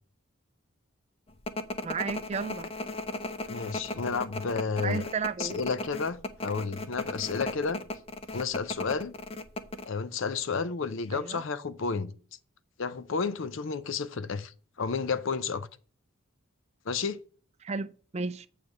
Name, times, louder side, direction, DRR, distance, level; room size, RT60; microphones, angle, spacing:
sound 1, 1.5-9.9, left 2 dB, 25° left, 0.5 m, -36 dB
voice 1, 1.8-2.7 4.8-5.6 11.1-11.4 17.6-18.5, right 5 dB, 30° right, 0.4 m, -33 dB
voice 2, 3.5-5.1 5.4-7.8 8.3-9.2 9.9-12.1 12.8-15.7 16.9-17.2, left 5 dB, 65° left, 0.6 m, -31 dB
8.8 x 3.4 x 6.5 m
head